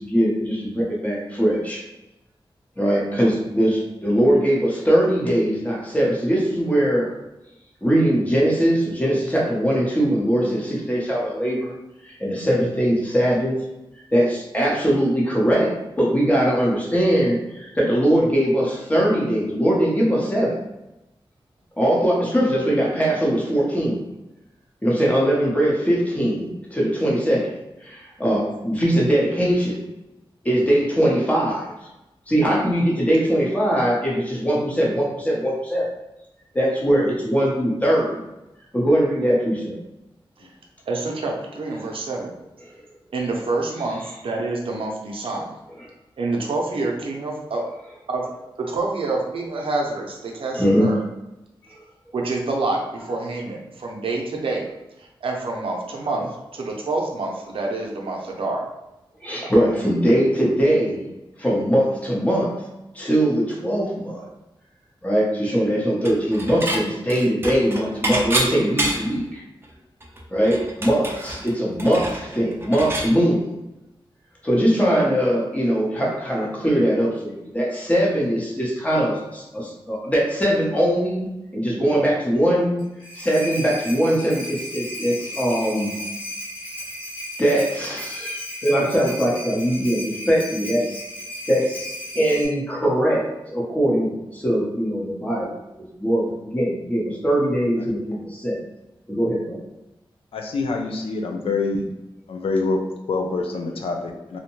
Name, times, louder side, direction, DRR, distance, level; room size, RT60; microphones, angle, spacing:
voice 1, 0.0-1.8 2.8-7.1 7.8-11.7 12.0-13.5 14.1-20.5 21.8-24.0 24.8-27.5 27.8-29.8 30.4-31.7 32.3-35.8 36.5-38.2 38.7-39.8 50.5-50.9 51.7-51.8 59.2-61.0 61.4-62.5 62.9-64.3 65.0-69.4 70.3-73.5 74.4-81.3 81.5-82.8 83.2-85.9 87.4-91.1 91.5-93.2 93.5-95.5 96.0-98.6 99.1-99.6, equal, 15° left, -4 dB, 0.7 m, -21 dB
voice 2, 40.9-42.3 43.1-45.5 46.2-47.6 48.1-48.3 48.6-51.0 52.1-54.7 55.0-58.6, right 3 dB, 75° right, -1 dB, 0.5 m, -27 dB
Dishes pots and pans / Chink clink, 66.0-66.8 67.1-69.2 69.6-69.7 70.0-73.1, right 1 dB, 25° right, 0.4 m, -27 dB
sound 1, 82.8-92.5, left 1 dB, 60° left, 1.0 m, -34 dB
voice 3, 100.3-101.9 102.3-104.4, left 3 dB, 85° left, 2 dB, 0.4 m, -26 dB
2.6 x 2.1 x 2.9 m, 0.95 s
wide cardioid pair, 130°, 9 cm